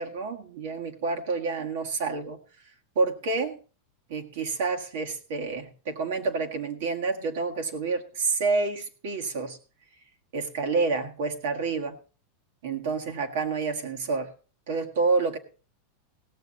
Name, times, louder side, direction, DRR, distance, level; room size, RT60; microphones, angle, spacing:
voice 1, 0.0-2.4 2.9-3.6 4.1-9.6 10.3-12.0 12.6-14.3 14.7-15.4, right 4 dB, 65° right, 4 dB, 1.7 m, -28 dB
17.0 x 7.5 x 4.1 m, 0.37 s
supercardioid pair, 160°, 0 cm